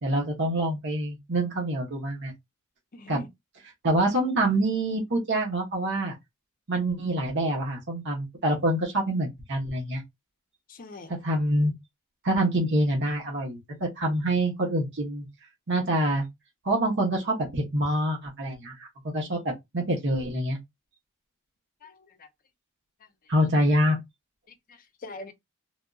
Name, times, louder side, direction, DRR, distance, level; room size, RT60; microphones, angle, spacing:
voice 1, 0.0-2.3 3.1-3.2 3.8-6.1 6.7-10.0 11.2-11.7 12.2-15.3 15.7-16.3 16.6-18.9 19.1-20.6 23.3-24.0, right 1 dB, 55° right, 0.9 m, -26 dB
voice 2, 2.9-3.3 10.7-11.1 19.9-20.0 21.8-22.3 24.5-25.3, left 2 dB, 40° left, 0.6 m, -43 dB
3.4 x 2.5 x 2.3 m
head